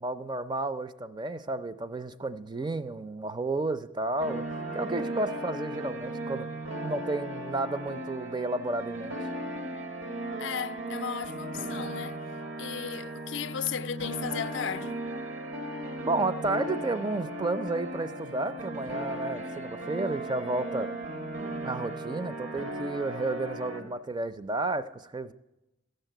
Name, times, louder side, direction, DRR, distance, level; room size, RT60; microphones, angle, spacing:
voice 1, 0.0-4.4 4.7-6.5 6.8-9.2 16.0-20.9 21.6-25.3, right 2 dB, 25° right, 0.4 m, -32 dB
sound 1, 4.2-23.8, right 1 dB, 85° right, 1.7 m, -36 dB
voice 2, 10.4-12.2 12.6-15.0, left 8 dB, 65° left, 0.4 m, -35 dB
13.0 x 6.6 x 9.1 m
head